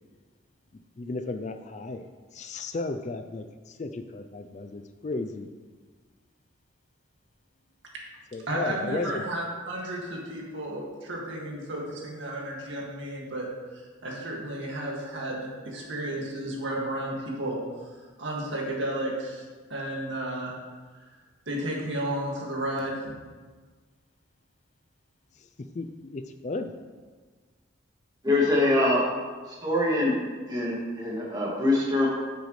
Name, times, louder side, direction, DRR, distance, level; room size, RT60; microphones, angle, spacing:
voice 1, 1.0-5.5 8.3-9.2 25.6-26.7, left 3 dB, 35° left, 7 dB, 0.4 m, -34 dB
voice 2, 8.5-13.5 13.7-19.4 19.7-20.5 20.9-21.1 21.5-23.2, right 1 dB, 65° right, -2 dB, 2.1 m, -33 dB
voice 3, 28.2-29.1 29.6-30.2 30.5-32.1, left 1 dB, 20° right, -5 dB, 2.1 m, -24 dB
10.5 x 8.0 x 3.2 m, 1.4 s
head